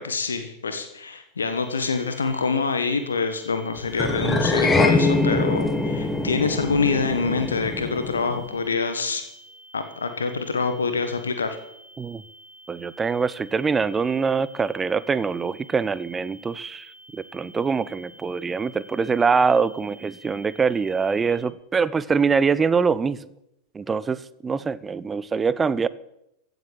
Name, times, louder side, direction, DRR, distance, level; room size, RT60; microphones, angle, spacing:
voice 1, 0.0-9.2 9.7-11.6, left 4 dB, 75° left, 1.4 m, -26 dB
sound 1, 1.4-21.4, right 1 dB, 85° right, 3.7 m, -49 dB
sound 2, 4.0-8.5, left 2 dB, 10° left, 1.5 m, -23 dB
voice 2, 12.7-16.9 17.1-23.2 23.7-25.9, right 5 dB, 15° right, 0.6 m, -24 dB
15.5 x 8.1 x 7.7 m
figure-of-eight pair, 90°, 0 cm